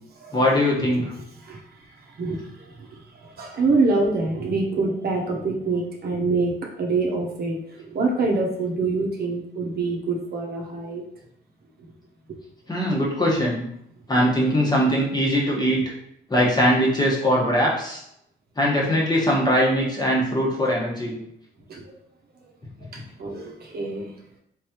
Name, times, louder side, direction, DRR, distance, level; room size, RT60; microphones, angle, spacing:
voice 1, 0.3-1.1 12.7-13.6 14.1-15.9 16.3-18.0 18.6-21.2, equal, 20° left, -4 dB, 1.2 m, -21 dB
voice 2, 2.0-11.0 20.6-20.7 21.7-22.0 22.9-24.1, right 3 dB, 50° right, -1 dB, 0.9 m, -26 dB
3.7 x 3.2 x 2.9 m, 0.73 s
cardioid pair, 90°, 20 cm